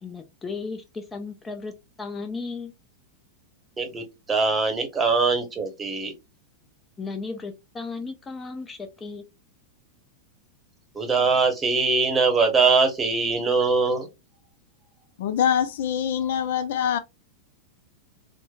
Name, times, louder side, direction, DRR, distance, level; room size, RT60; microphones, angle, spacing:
voice 1, 0.0-1.7 2.0-2.7 7.0-9.2, left 4 dB, 20° left, 0.6 m, -35 dB
voice 2, 3.8-6.1 10.9-14.1, right 4 dB, 20° right, 1.0 m, -22 dB
voice 3, 15.2-17.0, left 9 dB, 70° left, 0.4 m, -24 dB
3.0 x 2.1 x 2.3 m
hypercardioid pair, 105°, 0 cm